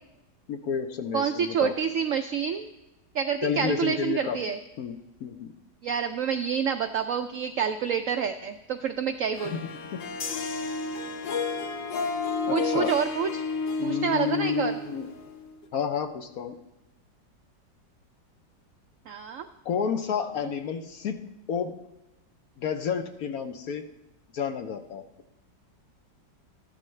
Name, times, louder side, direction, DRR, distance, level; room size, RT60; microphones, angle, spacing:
voice 1, 0.5-1.7 3.4-4.4 4.8-5.5 9.5-9.6 9.9-10.0 12.5-12.9 13.8-15.1 15.7-16.6 19.6-21.2 21.5-21.8 22.6-23.9 24.3-25.0, left 7 dB, 65° left, 7 dB, 1.0 m, -30 dB
voice 2, 1.1-2.7 3.1-4.6 5.8-9.7 12.5-13.4 13.8-14.8 19.1-19.5 20.4-20.5, right 7 dB, 80° right, 8 dB, 0.7 m, -28 dB
Harp, 9.4-15.6, left 4 dB, 80° left, 1.6 m, -32 dB
sound 1, 10.2-11.8, left 5 dB, 45° left, 1.3 m, -40 dB
13.0 x 13.0 x 3.2 m, 1.0 s
omnidirectional pair, 2.0 m